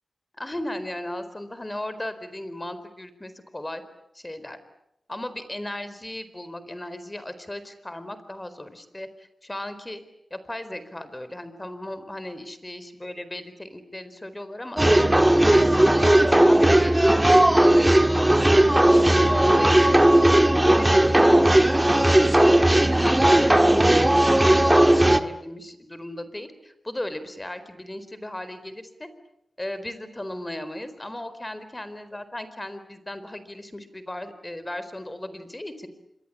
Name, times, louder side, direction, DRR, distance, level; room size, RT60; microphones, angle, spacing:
voice 1, 0.4-3.8 4.1-4.6 5.1-10.0 10.3-17.0 17.5-18.2 18.8-20.0 20.4-29.1 29.6-35.9, left 1 dB, 20° left, 12 dB, 4.3 m, -36 dB
sound 1, 14.8-25.2, right 1 dB, 15° right, 1.7 m, -17 dB
27.0 x 23.5 x 8.7 m, 0.79 s
cardioid pair, 55°, 0 cm